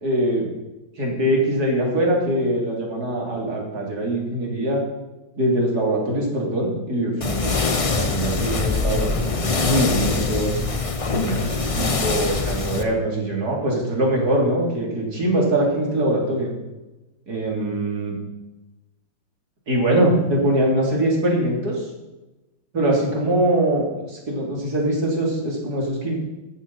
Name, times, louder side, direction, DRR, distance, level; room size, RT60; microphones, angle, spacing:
voice 1, 0.0-0.5 1.0-4.8 5.4-7.5 7.8-10.6 11.1-16.5 17.3-18.2 19.7-21.8 22.7-26.1, right 1 dB, 55° right, -2 dB, 3.8 m, -22 dB
sound 1, 7.2-12.8, left 4 dB, 45° left, 0.4 m, -23 dB
13.5 x 12.5 x 4.3 m, 1.1 s
omnidirectional pair, 2.0 m